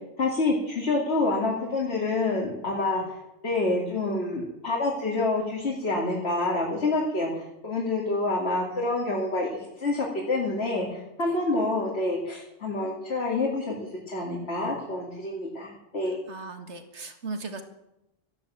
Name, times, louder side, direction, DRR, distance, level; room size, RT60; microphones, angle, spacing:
voice 1, 0.2-3.2 3.4-13.7 14.1-16.2, left 2 dB, 65° left, -3 dB, 2.8 m, -27 dB
voice 2, 16.3-17.6, right 3 dB, 75° right, 6 dB, 2.0 m, -37 dB
13.0 x 11.0 x 7.6 m, 0.87 s
omnidirectional pair, 1.2 m